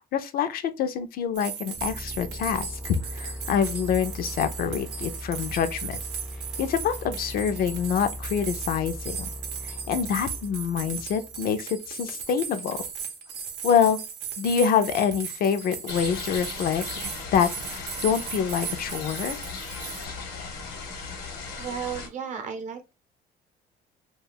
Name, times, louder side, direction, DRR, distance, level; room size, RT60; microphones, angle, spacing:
voice 1, 0.1-6.0 6.6-9.3 9.6-12.8 13.6-14.0 14.4-19.4, left 7 dB, 60° left, 0.4 m, -26 dB
sound 1, 1.3-20.0, right 7 dB, 90° right, 0.6 m, -37 dB
sound 2, 1.8-11.6, equal, 5° right, 0.4 m, -39 dB
sound 3, 15.9-22.1, left 4 dB, 85° left, 1.0 m, -37 dB
voice 2, 21.6-22.9, right 7 dB, 45° right, 0.7 m, -34 dB
2.3 x 2.3 x 3.3 m
cardioid pair, 110°, 17 cm